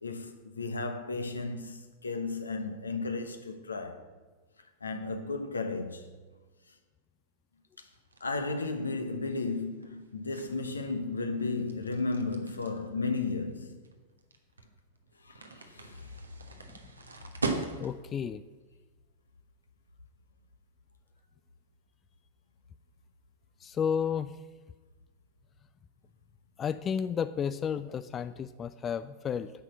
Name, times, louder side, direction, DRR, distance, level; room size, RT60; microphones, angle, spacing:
voice 1, 0.0-4.0 4.8-6.1 7.8-7.9 8.2-13.8 15.2-16.2 17.1-17.2, left 3 dB, 75° left, 1.1 m, -34 dB
sound 1, 7.8-18.2, right 3 dB, 75° right, 1.2 m, -41 dB
voice 2, 17.8-18.4 23.6-24.3 26.6-29.5, left 7 dB, 25° left, 0.3 m, -32 dB
9.9 x 6.0 x 8.1 m
figure-of-eight pair, 90°, 0 cm